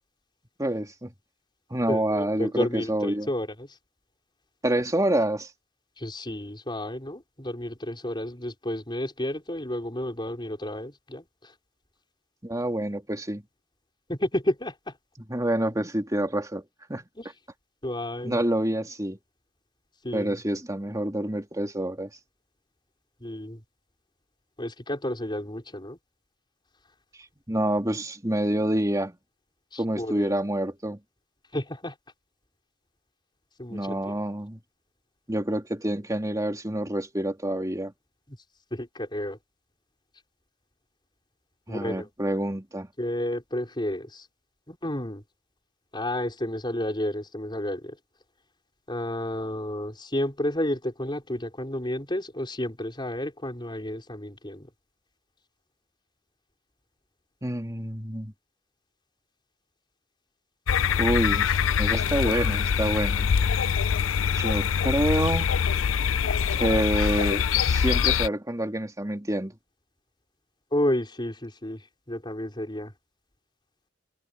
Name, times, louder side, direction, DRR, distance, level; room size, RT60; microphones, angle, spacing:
voice 1, 0.6-1.1 1.7-3.3 4.6-5.5 12.4-13.4 15.3-16.6 16.9-17.0 18.2-19.2 20.1-22.1 27.5-29.2 29.8-31.0 33.7-34.6 35.3-37.9 41.7-42.9 57.4-58.3 61.0-61.5 61.8-63.3 64.3-65.5 66.5-69.5, right 1 dB, 15° right, 2.9 m, -27 dB
voice 2, 1.9-3.7 6.0-11.5 14.1-15.0 17.2-17.3 17.8-18.4 20.0-20.4 23.2-23.6 24.6-26.0 29.7-30.3 31.5-31.9 33.6-34.2 38.7-39.4 41.7-42.1 43.0-44.3 44.7-45.2 45.9-48.0 48.9-54.7 70.7-72.9, left 1 dB, 25° left, 5.2 m, -31 dB
sound 1, 60.7-68.3, left 7 dB, 85° left, 0.5 m, -24 dB
head